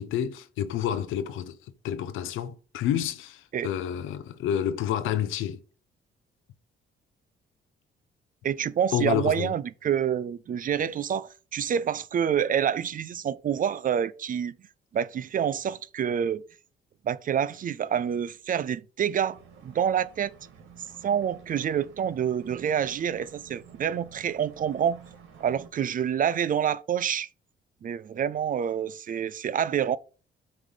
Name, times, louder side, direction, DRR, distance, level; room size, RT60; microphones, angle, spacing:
voice 1, 0.0-5.6 8.9-9.5, left 10 dB, 85° left, 0.7 m, -29 dB
voice 2, 8.4-14.5 14.9-16.4 17.0-20.3 21.0-25.0 25.4-27.3 27.8-30.0, right 8 dB, 45° right, 0.4 m, -27 dB
sound 1, 19.3-25.7, right 7 dB, 85° right, 1.7 m, -50 dB
7.4 x 3.2 x 5.3 m
cardioid pair, 90°, 20 cm